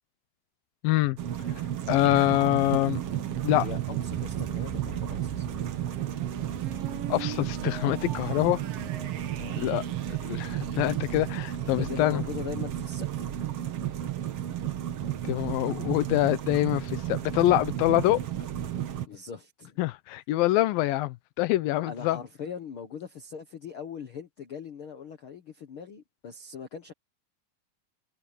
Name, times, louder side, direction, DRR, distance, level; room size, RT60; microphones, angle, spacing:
voice 1, 0.8-1.2 1.9-3.0 3.4-3.7 7.1-8.6 9.6-9.8 10.3-12.2 15.3-18.2 19.8-22.2, left 16 dB, 85° left, 2.7 m, -25 dB
sound 1, 1.2-19.1, right 11 dB, 55° right, 1.8 m, -33 dB
sound 2, 1.8-11.6, right 9 dB, 75° right, 3.2 m, -42 dB
voice 2, 3.6-5.5 9.4-9.7 11.8-13.3 19.1-19.8 21.8-26.9, left 7 dB, 50° left, 1.7 m, -40 dB
omnidirectional pair, 4.1 m